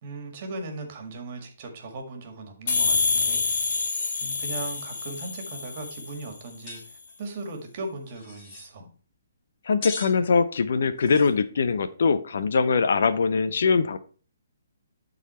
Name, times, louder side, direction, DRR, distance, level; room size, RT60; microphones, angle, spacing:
voice 1, 0.0-3.4 4.2-8.9, right 2 dB, 40° right, 4 dB, 1.9 m, -38 dB
sound 1, 2.7-6.2, left 4 dB, 45° left, 1.8 m, -27 dB
sound 2, 6.7-6.8 7.1-7.2 8.1-8.7 9.8-10.1 11.0-11.3, left 3 dB, 20° left, 2.2 m, -38 dB
voice 2, 9.7-14.0, left 5 dB, 65° left, 12 dB, 0.7 m, -22 dB
11.0 x 4.0 x 4.3 m, 0.40 s
hypercardioid pair, 160°, 0 cm